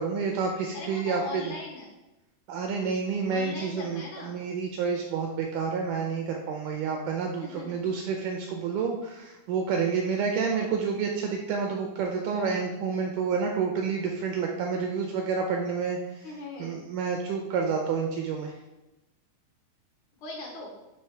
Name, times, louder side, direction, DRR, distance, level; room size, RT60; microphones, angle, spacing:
voice 1, 0.0-1.5 2.5-16.3 16.6-18.6, right 5 dB, 85° right, 2 dB, 1.8 m, -29 dB
voice 2, 0.7-1.9 3.3-4.4 7.4-7.8 16.2-16.8 20.2-20.7, left 3 dB, 65° left, -1 dB, 2.2 m, -39 dB
7.8 x 3.1 x 4.5 m, 0.98 s
omnidirectional pair, 4.1 m